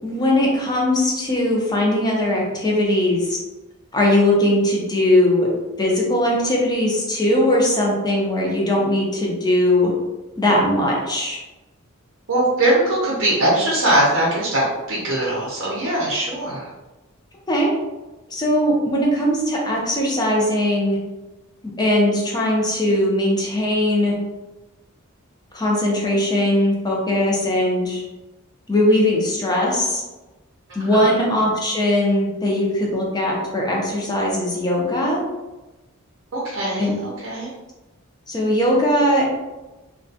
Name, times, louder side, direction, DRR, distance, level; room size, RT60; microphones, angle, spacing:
voice 1, 0.0-3.4 3.9-5.5 5.8-9.9 10.4-11.4 17.5-17.7 18.3-21.0 21.8-24.1 25.5-28.0 28.7-30.0 30.7-35.2 36.8-37.0 38.3-39.3, left 1 dB, 20° left, -2 dB, 0.5 m, -20 dB
voice 2, 12.3-16.7 30.8-31.2 36.3-37.5, right 1 dB, 65° right, -5 dB, 0.6 m, -21 dB
2.3 x 2.2 x 2.6 m, 1.1 s
head